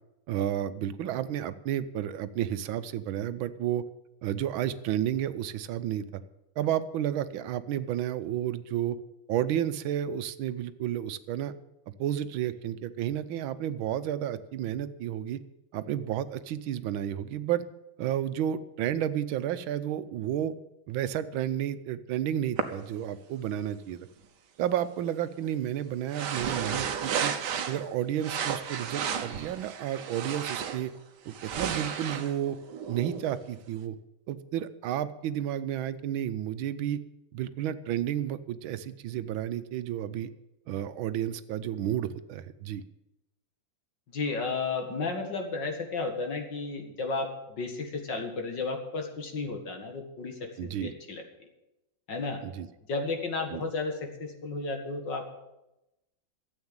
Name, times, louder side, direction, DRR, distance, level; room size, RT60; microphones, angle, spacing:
voice 1, 0.3-3.8 4.2-6.2 6.6-9.0 9.3-11.5 12.0-15.4 15.7-17.6 18.0-20.5 20.9-24.1 24.6-27.3 27.7-30.9 31.2-32.6 32.9-34.0 34.3-37.0 37.3-40.3 40.7-42.8 50.6-50.9 52.4-52.7 53.5-53.6, right 11 dB, 90° right, 12 dB, 1.6 m, -31 dB
sound 1, 22.6-22.7 26.1-27.9 28.2-30.9 31.3-33.5, right 7 dB, 65° right, 1.5 m, -33 dB
voice 2, 44.1-51.5 52.1-52.4 52.9-55.2, left 3 dB, 65° left, 3 dB, 2.6 m, -33 dB
13.0 x 8.2 x 8.9 m, 0.93 s
omnidirectional pair, 2.1 m